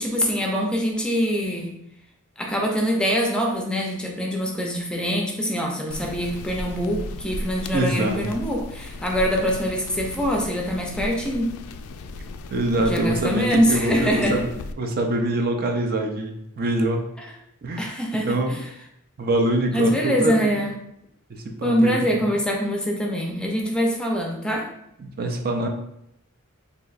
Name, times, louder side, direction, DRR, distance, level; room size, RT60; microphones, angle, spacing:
voice 1, 0.0-1.7 2.4-11.6 12.8-14.4 17.2-17.3 17.8-18.6 19.7-20.7 21.6-24.7, equal, 5° left, 0 dB, 0.5 m, -24 dB
sound 1, 5.9-14.7, left 2 dB, 85° left, 0.3 m, -36 dB
voice 2, 7.7-8.2 12.5-14.5 14.8-17.0 17.6-17.9 18.2-18.5 19.2-20.5 21.3-21.9 25.0-25.7, right 1 dB, 45° right, 3 dB, 0.5 m, -24 dB
4.2 x 2.7 x 2.4 m, 0.76 s
head